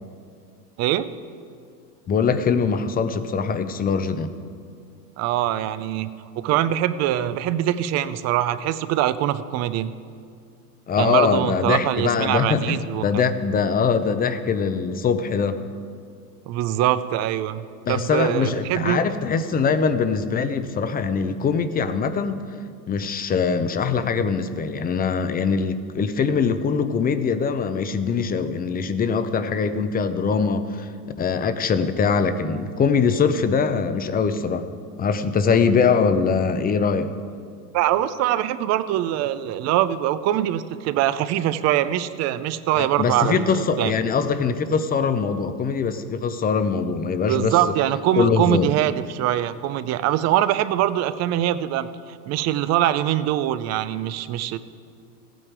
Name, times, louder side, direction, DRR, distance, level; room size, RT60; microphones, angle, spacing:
voice 1, 2.1-4.3 10.9-15.6 17.9-22.4 22.9-30.9 31.2-34.7 35.0-37.1 42.8-47.7 48.2-48.7, left 5 dB, 20° left, 11 dB, 0.6 m, -22 dB
voice 2, 5.2-9.9 11.0-13.2 16.5-19.0 37.7-43.9 47.3-54.6, right 12 dB, 35° right, 14 dB, 0.5 m, -23 dB
15.0 x 9.2 x 4.7 m, 2.2 s
hypercardioid pair, 105°, 46 cm